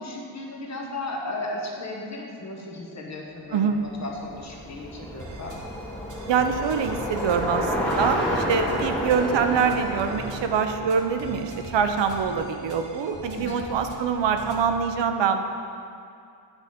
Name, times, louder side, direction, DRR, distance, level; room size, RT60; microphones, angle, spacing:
voice 1, 0.0-5.6 13.3-13.7, left 2 dB, 35° left, 0 dB, 0.9 m, -35 dB
Bicycle, 3.8-12.1, equal, 5° left, 0.9 m, -30 dB
sound 1, 5.2-14.8, right 1 dB, 45° right, 0.9 m, -42 dB
voice 2, 6.3-15.4, right 6 dB, 70° right, 7 dB, 0.6 m, -24 dB
8.9 x 4.9 x 4.1 m, 2.4 s
wide cardioid pair, 155°, 45 cm